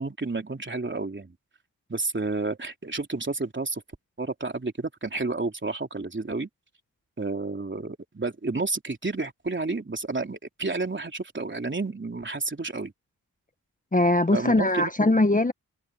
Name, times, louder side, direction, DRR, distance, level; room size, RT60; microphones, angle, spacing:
voice 1, 0.0-1.4 1.9-3.8 4.2-6.5 7.2-12.9 14.3-15.2, right 3 dB, 30° right, 3.3 m, -31 dB
voice 2, 13.9-15.5, left 2 dB, 20° left, 1.4 m, -21 dB
cardioid pair, 50°, 36 cm